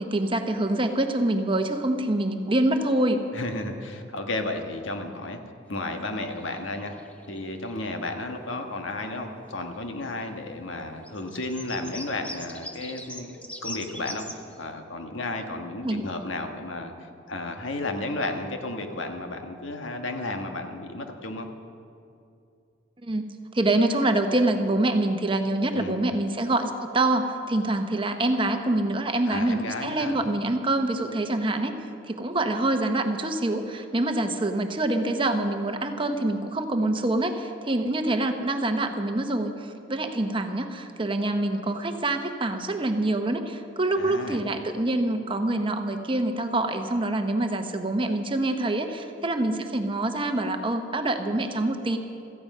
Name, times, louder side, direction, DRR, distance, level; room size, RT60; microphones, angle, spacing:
voice 1, 0.0-3.2 15.8-16.0 23.0-31.8 32.1-52.0, right 2 dB, 25° right, 6 dB, 0.9 m, -25 dB
voice 2, 3.3-5.4 5.7-7.0 7.3-13.3 13.6-21.5 25.7-26.0 29.2-30.2 44.0-44.4, left 2 dB, 85° left, 4 dB, 1.5 m, -33 dB
sound 1, 5.7-8.7 9.0-9.6 9.9-14.6, left 1 dB, 5° left, 0.9 m, -43 dB
17.0 x 14.0 x 5.5 m, 2.5 s
head